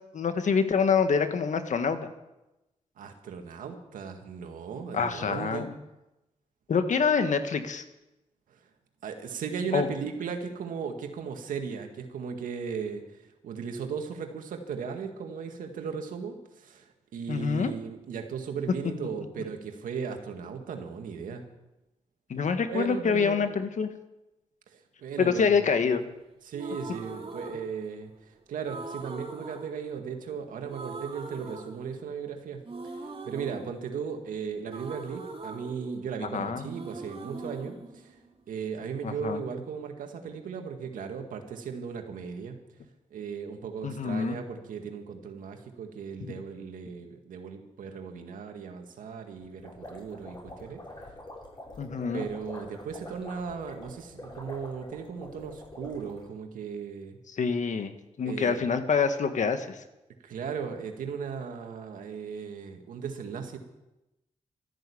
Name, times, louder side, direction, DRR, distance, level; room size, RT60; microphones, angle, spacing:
voice 1, 0.1-2.0 4.9-5.7 6.7-7.8 9.7-9.9 17.3-17.7 22.3-23.9 25.2-26.0 36.3-36.6 39.0-39.4 43.8-44.3 51.8-52.2 57.4-57.9 58.2-59.8, left 5 dB, 65° left, 8 dB, 1.6 m, -26 dB
voice 2, 3.0-5.7 9.0-21.4 22.7-23.6 24.7-25.6 26.4-32.6 33.2-38.2 38.5-42.6 43.1-50.8 52.1-57.2 58.3-58.7 60.2-63.6, right 6 dB, 85° right, 5 dB, 1.9 m, -37 dB
sound 1, 26.5-28.2 28.6-30.4 30.7-32.3 32.6-36.4 36.6-38.7, right 3 dB, 45° right, 2.5 m, -42 dB
sound 2, 49.4-56.3, left 1 dB, 35° left, 6.9 m, -45 dB
13.5 x 11.0 x 8.5 m, 0.96 s
cardioid pair, 55°, 13 cm